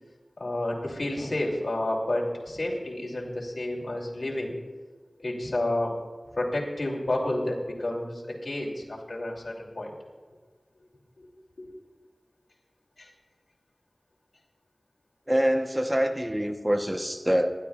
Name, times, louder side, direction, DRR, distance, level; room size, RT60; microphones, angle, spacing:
voice 1, 0.4-4.5 5.2-5.9 6.3-9.9 11.2-11.3 11.6-11.7 13.0-13.1, left 1 dB, 75° left, -3 dB, 2.8 m, -30 dB
voice 2, 15.3-17.5, equal, 15° right, 5 dB, 1.0 m, -25 dB
26.5 x 12.0 x 2.4 m, 1.5 s
wide cardioid pair, 50°, 0 cm